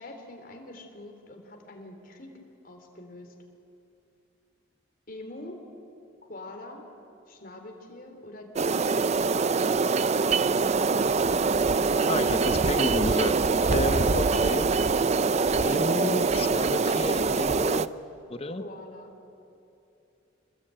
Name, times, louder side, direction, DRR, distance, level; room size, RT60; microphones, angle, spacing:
voice 1, 0.0-2.3 2.6-3.3 5.1-5.6 6.2-6.9 7.3-9.1 14.1-14.6 18.6-19.2, left 1 dB, 50° left, 4 dB, 3.6 m, -44 dB
sound 1, 8.6-17.9, right 4 dB, 35° right, 0.5 m, -24 dB
voice 2, 12.1-13.4 13.7-14.6 15.6-17.9 18.3-18.6, left 2 dB, 30° left, 9 dB, 1.0 m, -31 dB
26.5 x 21.0 x 9.0 m, 2.8 s
head